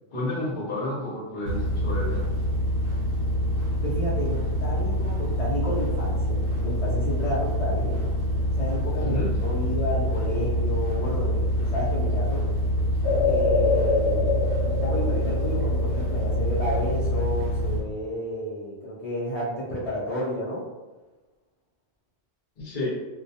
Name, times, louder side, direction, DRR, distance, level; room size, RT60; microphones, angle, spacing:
voice 1, 0.1-2.2 9.0-9.3 22.6-22.9, left 2 dB, 50° left, -4 dB, 0.7 m, -31 dB
sound 1, 1.4-17.8, equal, 65° right, 0.9 m, -26 dB
voice 2, 3.8-8.0 8.6-12.4 13.2-20.6, equal, 75° left, -7 dB, 0.3 m, -31 dB
sound 2, 13.0-16.7 17.1-17.2, left 4 dB, 20° right, 0.5 m, -26 dB
2.2 x 2.1 x 2.6 m, 1.2 s
omnidirectional pair, 1.3 m